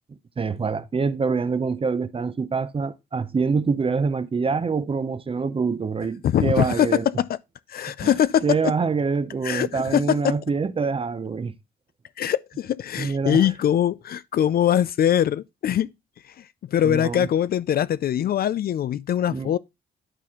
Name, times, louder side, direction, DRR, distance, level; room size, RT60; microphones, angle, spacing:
voice 1, 0.4-7.1 8.0-8.1 8.4-11.5 13.0-13.5 16.8-17.3 19.3-19.5, right 5 dB, 30° right, 0.6 m, -25 dB
voice 2, 6.2-7.3 7.7-8.7 9.4-10.4 12.2-15.9 16.7-19.6, left 10 dB, 50° left, 0.4 m, -22 dB
11.0 x 4.2 x 3.6 m
cardioid pair, 90°, 20 cm